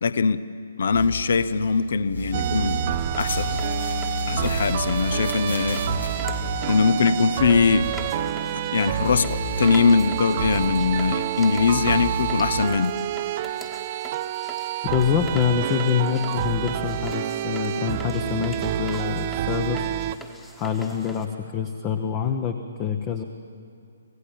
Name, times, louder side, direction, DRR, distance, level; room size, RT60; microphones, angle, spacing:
voice 1, 0.0-0.4 0.8-2.8 3.2-3.6 4.3-5.8 6.7-7.9 8.7-12.9, left 5 dB, 50° left, 15 dB, 0.8 m, -21 dB
sound 1, 0.9-1.8 2.1-8.7 8.9-11.2 11.5-12.5, left 1 dB, 85° left, 5.7 m, -32 dB
sound 2, 2.3-20.2, right 13 dB, 35° right, 0.5 m, -28 dB
sound 3, 3.0-21.3, equal, 5° left, 1.4 m, -44 dB
voice 2, 14.8-19.8 20.6-23.2, left 8 dB, 25° left, 8 dB, 1.0 m, -25 dB
26.0 x 16.5 x 7.4 m, 2.5 s
figure-of-eight pair, 130°, 0 cm